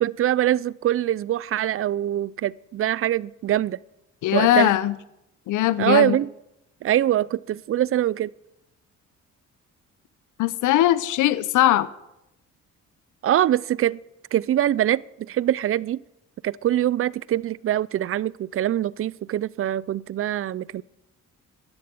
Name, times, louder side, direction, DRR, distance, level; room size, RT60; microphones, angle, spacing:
voice 1, 0.0-3.8 4.3-4.7 5.8-6.3 6.8-8.3 13.2-14.0 14.3-16.0 16.4-20.8, right 12 dB, 45° right, 0.5 m, -23 dB
voice 2, 4.2-4.9 5.5-6.2 10.4-11.9, left 13 dB, 80° left, 0.7 m, -20 dB
11.0 x 10.5 x 8.0 m
cardioid pair, 90°, 30 cm